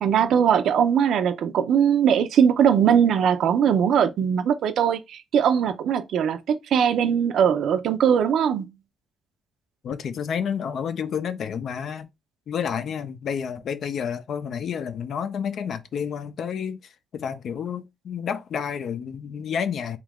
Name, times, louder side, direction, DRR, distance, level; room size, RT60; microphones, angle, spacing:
voice 1, 0.0-8.7, right 8 dB, 70° right, 0.5 m, -20 dB
voice 2, 9.8-12.1 12.5-20.0, left 7 dB, 60° left, 0.4 m, -30 dB
3.1 x 2.4 x 3.4 m
cardioid pair, 90°, 0 cm